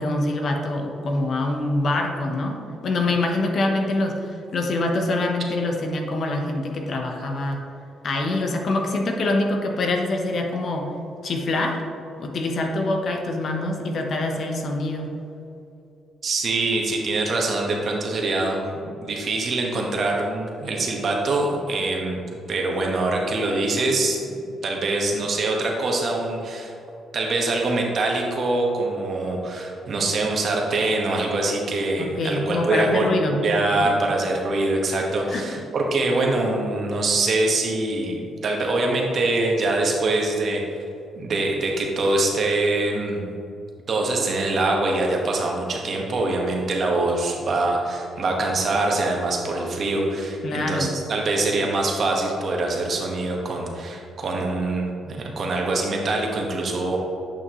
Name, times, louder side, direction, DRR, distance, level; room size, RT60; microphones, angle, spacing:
voice 1, 0.0-2.6 2.8-7.6 8.0-10.9 11.2-11.8 12.2-15.1 32.0-33.4 33.7-33.9 35.3-35.6 50.4-51.0, left 2 dB, 55° left, 3 dB, 1.0 m, -25 dB
voice 2, 16.2-22.2 22.5-26.7 27.1-33.1 33.4-40.6 41.1-43.2 43.9-57.0, right 2 dB, 50° right, 0 dB, 1.3 m, -24 dB
9.0 x 5.5 x 3.1 m, 2.6 s
cardioid pair, 90°, 0 cm